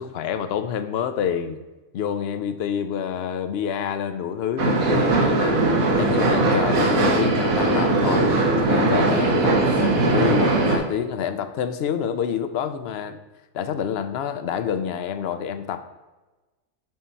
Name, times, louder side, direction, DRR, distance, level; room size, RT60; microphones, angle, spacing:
voice 1, 0.0-1.6 1.9-5.6 6.0-13.2 13.5-15.9, left 8 dB, 60° left, 10 dB, 0.7 m, -27 dB
sound 1, 4.6-10.8, right 2 dB, 85° right, 1.7 m, -20 dB
7.6 x 4.3 x 5.5 m, 1.2 s
omnidirectional pair, 1.4 m